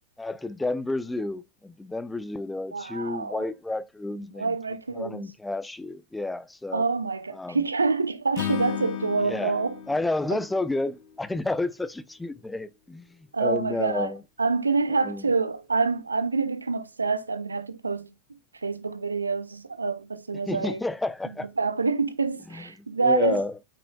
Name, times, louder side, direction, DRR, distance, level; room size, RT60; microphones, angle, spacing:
voice 1, 0.2-4.5 5.0-6.8 7.3-7.6 9.3-9.6 9.9-13.1 13.4-14.2 15.0-15.2 20.5-21.5 22.5-22.6 23.0-23.5, left 2 dB, 5° left, 0.7 m, -30 dB
voice 2, 2.7-3.5 4.4-5.3 6.7-9.8 10.3-10.4 13.3-14.1 14.4-18.1 18.6-20.8 21.6-23.4, right 4 dB, 80° right, 0.7 m, -27 dB
Acoustic guitar / Strum, 8.3-11.6, left 10 dB, 40° left, 1.1 m, -35 dB
8.4 x 5.9 x 2.3 m
figure-of-eight pair, 90°, 0 cm